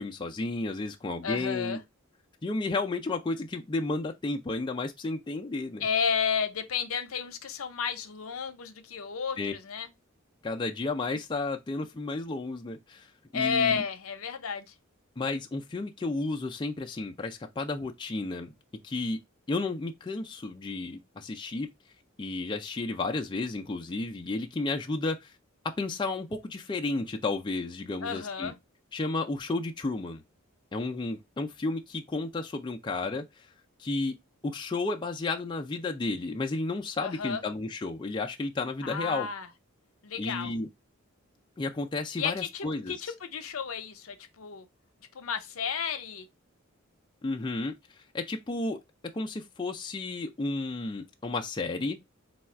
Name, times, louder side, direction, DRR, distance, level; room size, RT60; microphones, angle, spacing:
voice 1, 0.0-1.8 2.4-5.9 9.4-9.5 10.4-13.1 13.3-13.8 15.2-18.5 18.8-19.2 19.5-21.7 22.2-25.3 25.6-28.5 28.9-30.2 30.7-33.2 33.8-34.2 34.4-39.3 40.2-40.7 41.6-43.0 47.2-47.7 48.1-52.0, left 3 dB, 20° left, 0.4 m, -32 dB
voice 2, 1.2-1.8 5.8-9.9 13.3-14.7 28.0-28.5 37.0-37.4 38.8-39.5 40.0-40.5 42.2-44.7 45.1-46.3, left 6 dB, 75° left, 0.7 m, -32 dB
4.2 x 2.3 x 4.3 m
head